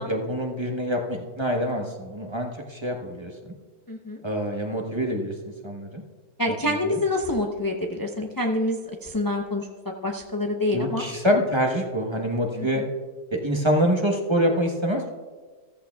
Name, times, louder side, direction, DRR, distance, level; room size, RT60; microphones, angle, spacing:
voice 1, 0.0-3.3 4.2-5.3 5.6-6.0 6.7-6.9 10.7-12.8 13.3-15.1, equal, 20° right, 2 dB, 1.0 m, -25 dB
voice 2, 3.9-4.2 6.4-9.7 10.0-11.0 12.6-12.8, left 1 dB, 35° left, 2 dB, 0.3 m, -27 dB
14.5 x 14.0 x 2.3 m, 1.4 s
omnidirectional pair, 1.6 m